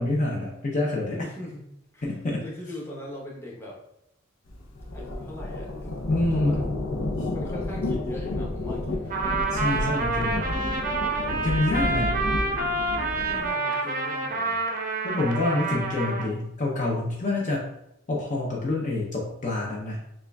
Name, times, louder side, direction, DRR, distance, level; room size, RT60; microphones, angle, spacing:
voice 1, 0.0-1.2 2.0-2.4 6.1-6.6 7.2-7.3 9.5-10.5 11.3-12.2 15.0-17.7 18.1-20.0, left 2 dB, 40° left, -3 dB, 0.5 m, -27 dB
voice 2, 1.1-1.6 1.9-2.1 2.4-3.8 4.9-6.7 7.3-9.2 13.3-14.6, left 1 dB, 15° left, -4 dB, 0.8 m, -40 dB
sound 1, 4.5-13.5, left 1 dB, 85° left, 0.6 m, -31 dB
Trumpet, 9.1-16.3, right 2 dB, 45° right, 0.5 m, -28 dB
6.2 x 2.3 x 2.3 m, 0.81 s
head